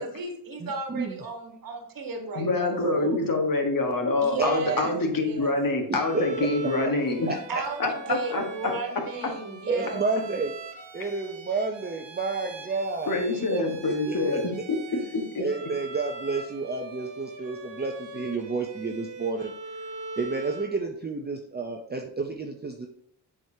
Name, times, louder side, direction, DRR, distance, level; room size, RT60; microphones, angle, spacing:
voice 1, 0.0-3.2 4.2-5.5 7.3-10.0, right 4 dB, 50° right, 4 dB, 1.4 m, -35 dB
voice 2, 0.6-1.2 2.8-3.1 4.4-4.8 6.1-6.3 7.3-7.6 8.0-8.1 9.7-10.5 10.9-13.2 13.5-13.6 14.1-14.4 15.4-19.5 20.2-22.9, right 4 dB, 20° right, 2 dB, 0.6 m, -30 dB
voice 3, 2.3-7.3 7.8-8.7 13.1-15.4, left 3 dB, 45° left, 3 dB, 1.5 m, -26 dB
Bowed string instrument, 5.9-20.8, right 2 dB, 70° right, 1.1 m, -42 dB
7.7 x 5.0 x 2.8 m, 0.67 s
cardioid pair, 100°, 45 cm